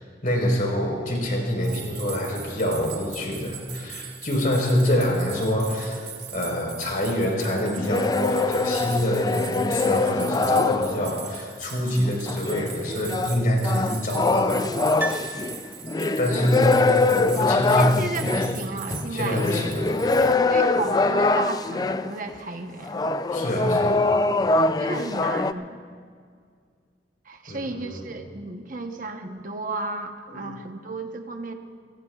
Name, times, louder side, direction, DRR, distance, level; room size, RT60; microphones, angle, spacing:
voice 1, 0.0-15.5 16.2-18.5 19.1-20.1 23.3-24.0 27.5-28.0 30.3-30.4, equal, 50° left, 0 dB, 4.2 m, -26 dB
sound 1, 1.6-20.3, right 9 dB, 70° right, 1.6 m, -41 dB
sound 2, 7.8-11.3 12.3-22.2 22.8-25.5, left 3 dB, 20° left, 0.3 m, -23 dB
Piano, 15.0-16.2 16.5-16.6, right 2 dB, 10° right, 0.7 m, -34 dB
voice 2, 17.8-19.7 20.5-23.1 23.6-23.9 24.8-25.8 27.2-31.5, right 2 dB, 50° right, 5 dB, 0.9 m, -33 dB
30.0 x 16.0 x 2.4 m, 2.1 s
head